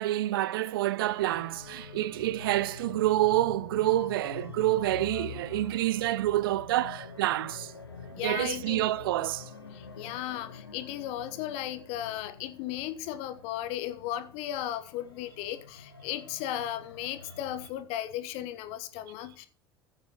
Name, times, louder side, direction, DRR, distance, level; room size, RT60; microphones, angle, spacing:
voice 1, 0.0-7.7 8.2-9.5, right 15 dB, 65° right, 0.4 m, -28 dB
sound 1, 1.0-17.7, left 5 dB, 80° left, 1.4 m, -46 dB
voice 2, 8.1-8.9 9.7-19.5, left 12 dB, 55° left, 1.3 m, -36 dB
15.0 x 8.9 x 3.1 m
figure-of-eight pair, 65°, 13 cm